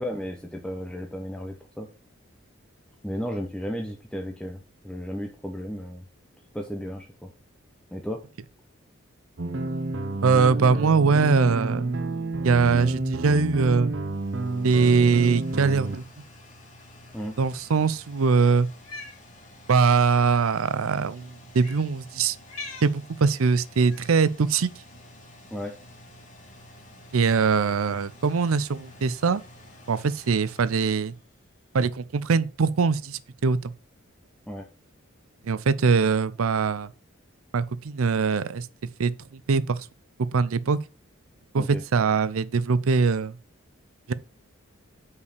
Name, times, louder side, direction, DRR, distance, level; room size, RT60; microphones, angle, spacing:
voice 1, 0.0-1.9 3.0-6.0 6.5-7.3 7.9-8.2 17.1-17.4 25.5-25.7 34.5-34.7 41.6-41.8, equal, 5° left, 0.7 m, -34 dB
sound 1, 9.4-16.0, right 2 dB, 60° right, 0.9 m, -30 dB
voice 2, 10.2-11.9 12.4-13.9 14.6-16.0 17.4-18.7 19.7-22.4 22.8-24.7 27.1-29.4 29.9-31.1 31.7-33.7 35.4-36.9 37.5-38.7 39.0-39.8 40.3-40.8 41.5-43.4 44.1-44.2, right 5 dB, 85° right, 0.5 m, -22 dB
sound 2, 13.7-31.8, left 1 dB, 35° left, 2.1 m, -51 dB
Cat, 18.7-19.2 20.3-20.4 21.5-21.9 22.4-22.9 23.9-24.3, left 3 dB, 80° left, 2.3 m, -41 dB
5.6 x 4.9 x 6.6 m
head